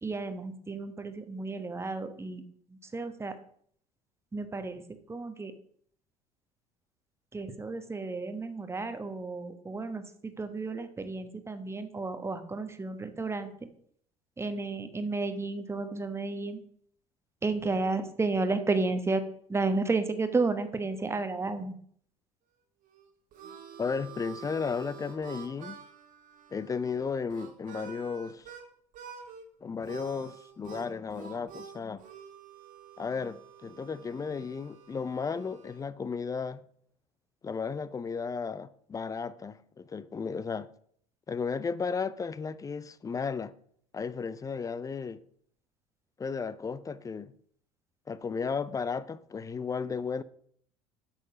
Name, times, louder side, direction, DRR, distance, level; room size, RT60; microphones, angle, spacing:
voice 1, 0.0-2.4 2.9-3.4 4.3-4.8 5.1-5.5 7.3-13.5 14.4-16.6 17.4-19.2 19.5-21.7, right 3 dB, 15° right, 1.0 m, -32 dB
Harmonica, 22.8-28.6 28.9-29.4 29.8-35.8, right 7 dB, 45° right, 1.6 m, -48 dB
voice 2, 23.8-25.8 26.5-28.5 29.6-32.0 33.0-36.6 37.4-40.7 41.3-43.5 43.9-45.2 46.2-47.3 48.1-50.2, left 5 dB, 20° left, 0.5 m, -34 dB
8.4 x 6.5 x 4.9 m
figure-of-eight pair, 65°, 19 cm